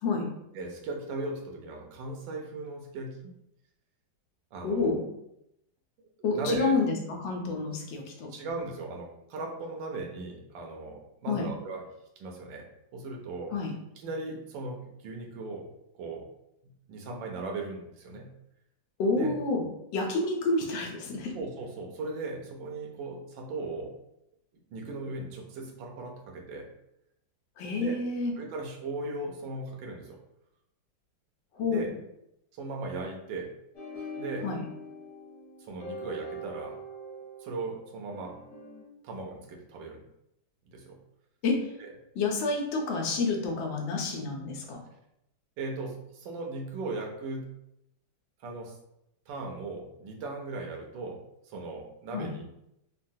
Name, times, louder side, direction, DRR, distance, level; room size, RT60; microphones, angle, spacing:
voice 1, 0.5-3.3 4.5-5.0 6.0-6.7 8.3-11.8 12.2-13.5 14.0-15.7 16.0-16.2 16.6-18.3 19.1-19.3 21.3-23.9 24.7-26.7 27.8-28.0 28.4-30.2 31.6-31.9 32.6-33.5 34.2-34.5 35.7-36.8 37.4-38.4 39.0-40.0 40.7-41.0 41.8-41.9 45.6-47.5 48.4-48.8 49.3-51.2 51.5-52.4, right 2 dB, 85° right, 1 dB, 1.4 m, -37 dB
voice 2, 4.6-5.0 6.2-8.3 11.3-11.5 13.5-13.7 19.0-19.7 19.9-21.3 27.6-28.3 31.5-31.9 34.4-34.6 41.4-41.7 42.1-44.8 52.1-52.3, left 3 dB, 85° left, 1 dB, 1.4 m, -29 dB
sound 1, 33.7-38.8, equal, 50° left, 1.5 m, -42 dB
3.7 x 2.2 x 2.6 m, 0.82 s
omnidirectional pair, 2.0 m